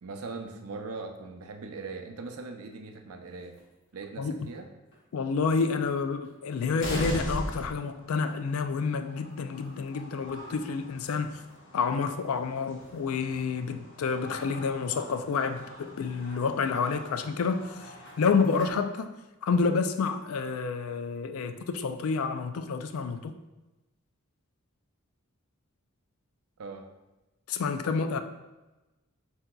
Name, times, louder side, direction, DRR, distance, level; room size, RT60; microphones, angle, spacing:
voice 1, 0.0-3.5 3.9-4.7 26.6-26.9, right 4 dB, 85° right, 5 dB, 0.5 m, -40 dB
sound 1, 3.4-3.6 4.5-4.6 4.9-5.0 6.2-6.3 6.7-18.7, equal, 55° left, 1.0 m, -42 dB
voice 2, 5.1-11.4 11.7-17.9 18.2-19.1 19.4-23.4 27.5-28.2, left 5 dB, 75° left, 9 dB, 0.4 m, -29 dB
7.4 x 2.8 x 2.3 m, 1.0 s
head